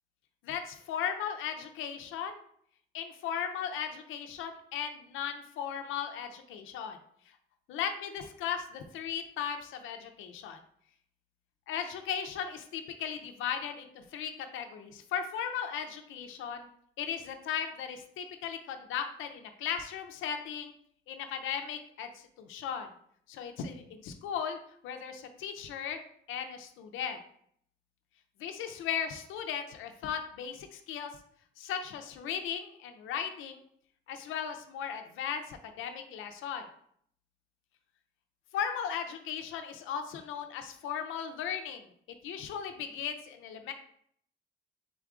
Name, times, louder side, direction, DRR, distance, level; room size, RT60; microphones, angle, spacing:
voice 1, 0.4-2.4 2.9-7.0 7.7-10.6 11.7-16.7 17.0-20.7 21.1-22.9 23.3-24.6 24.8-26.0 26.3-27.2 28.4-31.1 31.6-33.6 34.1-36.6 38.5-41.9 42.2-43.7, left 8 dB, 85° left, 6 dB, 0.6 m, -37 dB
3.7 x 3.5 x 3.7 m, 0.65 s
cardioid pair, 90°, 20 cm